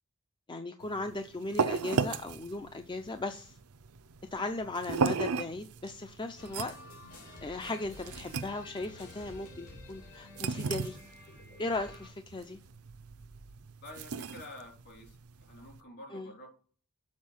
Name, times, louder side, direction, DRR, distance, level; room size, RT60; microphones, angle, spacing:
voice 1, 0.5-3.6 4.3-6.8 7.4-11.0 11.6-12.6 16.1-16.3, left 2 dB, 20° left, 8 dB, 0.5 m, -37 dB
sound 1, 0.8-15.8, right 5 dB, 75° right, 0.6 m, -36 dB
sound 2, 6.4-12.1, left 2 dB, 75° left, 3.1 m, -51 dB
voice 2, 13.8-16.5, left 1 dB, 50° left, 1 dB, 3.0 m, -49 dB
7.3 x 4.7 x 6.3 m, 0.43 s
head